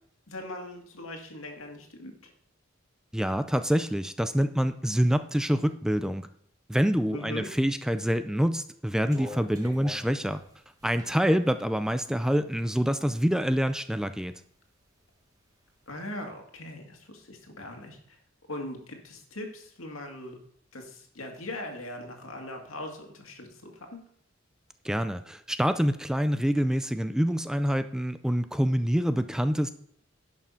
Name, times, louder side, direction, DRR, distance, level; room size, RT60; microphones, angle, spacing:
voice 1, 0.3-2.3 7.1-7.5 15.9-18.2 18.5-20.4 20.7-24.0, left 1 dB, 85° left, 3 dB, 2.2 m, -40 dB
voice 2, 3.1-6.3 6.7-10.4 10.8-14.4 24.8-29.7, equal, 5° right, 10 dB, 0.4 m, -26 dB
sound 1, 9.1-12.9 13.4-14.4 14.7-15.7, left 1 dB, 20° right, 1.6 m, -46 dB
11.0 x 6.0 x 5.6 m, 0.65 s
head